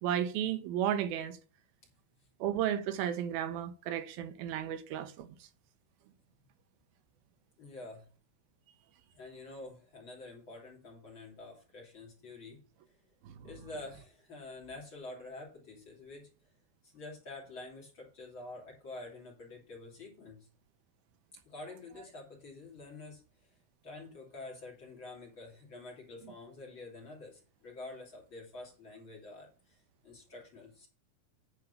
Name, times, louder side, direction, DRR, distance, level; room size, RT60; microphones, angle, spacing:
voice 1, 0.0-1.4 2.4-5.3 13.2-13.5, right 10 dB, 85° right, 2.7 m, -33 dB
voice 2, 7.6-8.1 9.1-12.6 12.9-13.0 13.4-16.3 16.8-20.5 21.4-23.6 23.8-30.9, left 2 dB, 35° left, 3.3 m, -48 dB
9.6 x 4.6 x 6.8 m
omnidirectional pair, 4.3 m